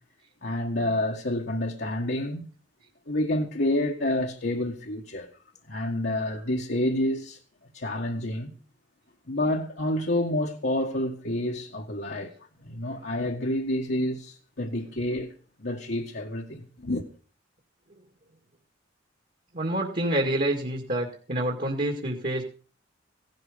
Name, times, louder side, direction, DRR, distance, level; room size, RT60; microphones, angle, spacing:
voice 1, 0.4-2.5 3.1-5.3 5.7-7.4 7.7-8.5 9.3-12.3 12.6-15.3 15.6-17.0, left 1 dB, 55° left, 1.6 m, -28 dB
voice 2, 19.5-22.4, right 1 dB, 45° right, 2.2 m, -27 dB
17.0 x 12.0 x 5.1 m
head